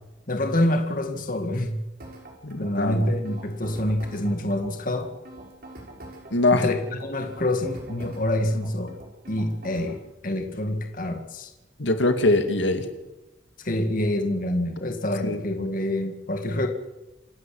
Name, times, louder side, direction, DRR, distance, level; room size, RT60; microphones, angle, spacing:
voice 1, 0.3-1.8 2.6-5.1 6.5-9.0 9.3-11.5 13.6-16.7, left 1 dB, 45° left, 5 dB, 2.0 m, -26 dB
sound 1, 2.0-10.0, right 1 dB, 50° right, 5.9 m, -44 dB
voice 2, 2.4-3.1 6.3-6.6 11.8-12.9 15.2-15.4, left 2 dB, 75° left, 7 dB, 2.4 m, -22 dB
28.0 x 12.0 x 8.7 m, 1.0 s
head